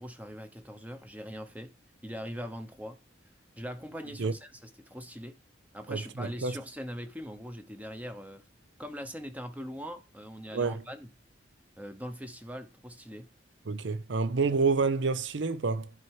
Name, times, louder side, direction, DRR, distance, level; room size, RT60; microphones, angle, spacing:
voice 1, 0.0-1.7 2.0-3.0 3.6-5.3 5.7-8.4 8.8-11.1 11.8-13.3, equal, 10° right, 0.8 m, -41 dB
voice 2, 5.9-6.6 10.5-10.8 13.7-15.9, right 4 dB, 75° right, 0.7 m, -28 dB
11.0 x 4.7 x 4.7 m
head